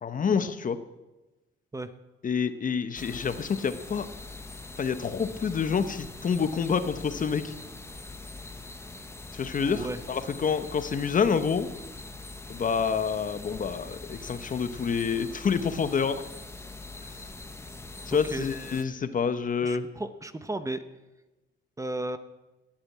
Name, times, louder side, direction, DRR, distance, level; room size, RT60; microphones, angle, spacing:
voice 1, 0.0-0.8 2.2-4.1 4.8-7.5 9.3-11.7 12.5-16.2 18.1-19.8, left 6 dB, 40° left, 11 dB, 1.1 m, -28 dB
sound 1, 2.9-18.8, left 3 dB, 15° left, 1.3 m, -43 dB
voice 2, 9.7-10.0 18.2-18.5 19.6-20.8 21.8-22.2, right 2 dB, 15° right, 11 dB, 0.9 m, -34 dB
17.5 x 8.9 x 7.4 m, 1.1 s
cardioid pair, 90°, 20 cm